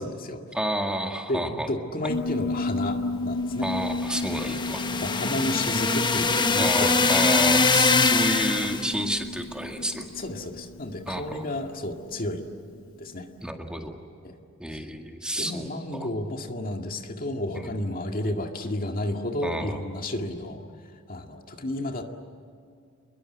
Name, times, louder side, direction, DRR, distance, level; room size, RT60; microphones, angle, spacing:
voice 1, 0.0-0.4 1.3-3.7 4.9-7.5 10.2-12.4 13.0-13.3 14.2-14.4 14.7-14.8 15.4-20.6 21.1-22.0, left 1 dB, 45° left, 4 dB, 2.0 m, -32 dB
voice 2, 0.5-1.7 3.6-4.8 6.6-10.1 11.1-11.4 13.4-14.0 14.6-16.1 17.5-17.7 19.4-19.8, right 1 dB, 5° right, 3 dB, 2.1 m, -30 dB
Piano, 2.1-12.8, left 2 dB, 80° left, 1.0 m, -34 dB
sound 1, 4.0-8.9, left 4 dB, 20° left, 1.0 m, -23 dB
29.0 x 22.0 x 8.1 m, 2.4 s
head